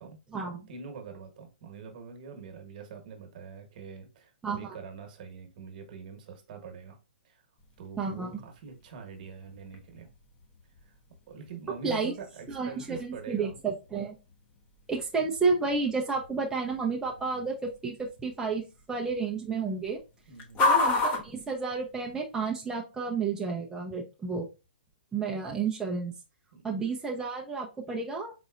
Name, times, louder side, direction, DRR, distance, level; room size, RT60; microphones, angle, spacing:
voice 1, 0.0-7.0 7.2-7.4 7.8-10.1 10.8-10.9 11.3-13.6 17.3-17.5 20.3-20.6 26.5-26.7, right 6 dB, 50° right, 1.2 m, -44 dB
voice 2, 4.4-4.7 8.0-8.3 11.8-12.1 12.5-14.2 14.9-20.0 20.6-24.5 25.1-26.1 26.6-28.3, right 4 dB, 10° right, 0.6 m, -31 dB
sound 1, 7.6-22.4, left 3 dB, 30° left, 1.0 m, -36 dB
4.1 x 3.9 x 2.4 m
hypercardioid pair, 130°, 5 cm